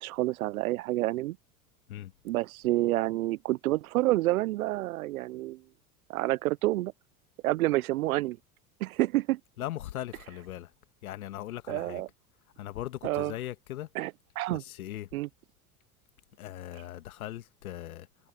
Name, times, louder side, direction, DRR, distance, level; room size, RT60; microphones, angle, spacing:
voice 1, 0.0-1.4 2.2-5.6 6.1-6.9 7.4-8.4 8.8-9.4 11.7-12.1 13.0-13.3 13.9-14.6 15.1-15.3, right 17 dB, 75° right, 0.7 m, -28 dB
voice 2, 9.6-10.7 11.0-12.0 12.6-13.9 14.5-15.1 16.4-18.1, left 13 dB, 80° left, 1.8 m, -39 dB
hypercardioid pair, 80°, 43 cm